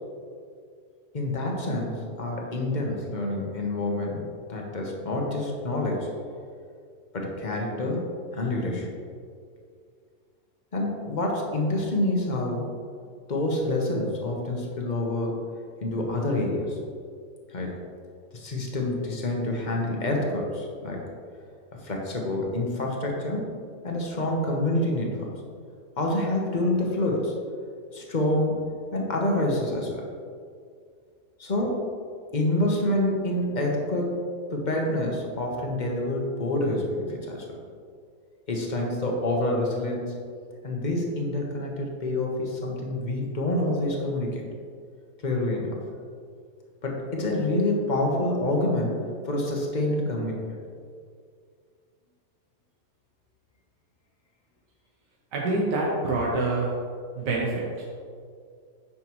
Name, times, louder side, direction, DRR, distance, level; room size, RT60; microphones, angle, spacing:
voice 1, 1.1-6.1 7.1-8.0 8.3-8.9 10.7-12.7 13.3-15.4 15.8-16.8 17.5-17.8 18.3-21.0 21.8-23.5 23.8-25.3 26.0-27.3 27.9-28.6 28.9-29.9 31.4-31.9 32.3-34.2 34.5-37.5 38.5-40.1 40.6-44.4 45.2-45.8 46.8-50.4, left 1 dB, 30° left, -1 dB, 1.0 m, -27 dB
voice 2, 55.3-56.7 57.2-57.8, right 2 dB, 90° right, -3 dB, 1.6 m, -26 dB
9.2 x 6.2 x 3.1 m, 2.2 s
omnidirectional pair, 1.8 m